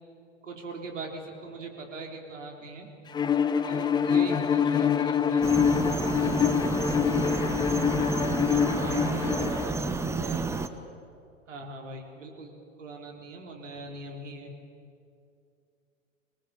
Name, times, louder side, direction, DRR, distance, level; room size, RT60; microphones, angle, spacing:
voice 1, 0.4-2.9 3.7-5.8 11.5-12.5 12.8-14.5, right 3 dB, 70° right, 1 dB, 4.1 m, -41 dB
Bowed string instrument, 3.1-9.7, left 7 dB, 10° left, 0.6 m, -25 dB
sound 1, 5.4-10.7, right 3 dB, 5° right, 1.0 m, -30 dB
voice 2, 7.9-10.7, right 4 dB, 40° right, 3 dB, 2.9 m, -41 dB
26.0 x 19.0 x 7.7 m, 2.5 s
figure-of-eight pair, 95°, 38 cm